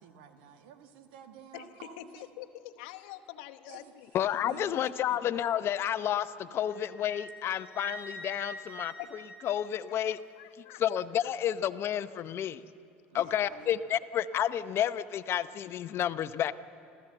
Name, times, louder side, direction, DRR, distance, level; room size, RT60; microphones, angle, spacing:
voice 1, 0.0-2.3 3.7-3.9 4.5-5.2 5.8-6.0 13.1-13.8, right 8 dB, 75° right, 7 dB, 1.6 m, -52 dB
voice 2, 1.5-4.1 9.0-9.3 9.9-10.8 11.2-11.3 13.1-13.4, left 13 dB, 75° left, 8 dB, 1.0 m, -46 dB
voice 3, 4.1-8.9 9.4-10.2 10.8-12.6 13.1-16.5, left 10 dB, 50° left, 14 dB, 0.7 m, -30 dB
Wind instrument woodwind instrument, 6.7-10.2, right 1 dB, 30° right, 7.2 m, -46 dB
29.5 x 14.0 x 7.9 m, 2.5 s
hypercardioid pair, 75°, 5 cm